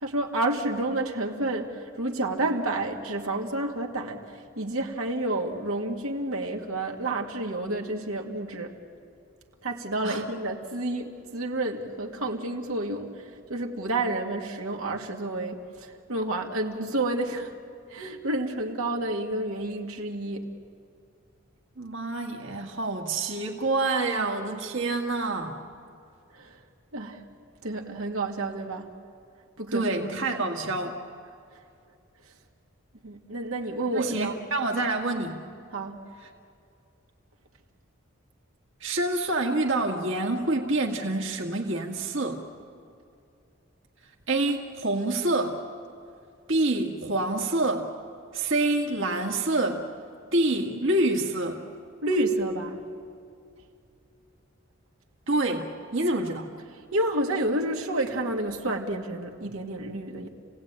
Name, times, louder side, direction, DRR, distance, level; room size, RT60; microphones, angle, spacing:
voice 1, 0.0-8.7 9.6-13.1 13.5-17.5 17.9-20.5 26.3-26.5 26.9-27.2 27.6-28.9 29.6-30.2 33.0-34.4 35.7-36.0 52.0-52.8 56.9-60.3, right 2 dB, 85° right, 1 dB, 2.1 m, -30 dB
voice 2, 21.8-25.6 29.7-31.0 33.9-35.5 38.8-42.4 44.3-45.6 46.5-47.9 48.3-49.9 50.3-51.6 55.3-56.5, right 2 dB, 65° right, 1 dB, 1.9 m, -27 dB
29.5 x 17.5 x 8.9 m, 2.4 s
head